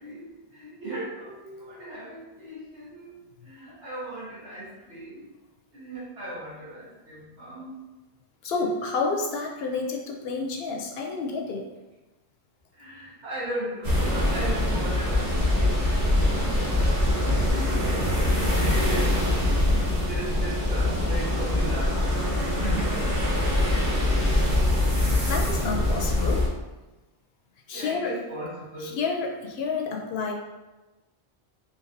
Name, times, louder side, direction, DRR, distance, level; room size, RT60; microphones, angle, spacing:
voice 1, 0.0-3.1 3.4-5.3 5.7-7.7 12.7-16.7 17.3-19.2 19.6-25.0 27.7-29.1, right 1 dB, 80° right, -9 dB, 1.7 m, -37 dB
voice 2, 8.4-11.7 25.3-26.5 27.7-28.1 28.8-30.3, left 4 dB, 70° left, 1 dB, 0.8 m, -29 dB
sound 1, 13.8-26.5, left 1 dB, 40° right, 0.9 m, -23 dB
4.1 x 2.7 x 2.6 m, 1.1 s
omnidirectional pair, 1.1 m